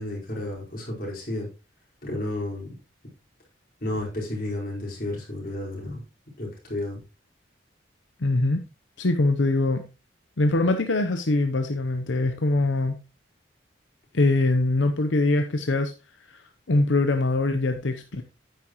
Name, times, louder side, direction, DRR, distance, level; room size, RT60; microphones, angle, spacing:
voice 1, 0.0-1.5 2.0-2.8 3.8-6.0 6.4-7.0, left 1 dB, 50° left, -3 dB, 4.7 m, -32 dB
voice 2, 8.2-8.6 9.0-9.8 10.4-13.0 14.1-18.2, left 2 dB, 85° left, 7 dB, 0.8 m, -23 dB
9.7 x 9.1 x 3.0 m, 0.29 s
head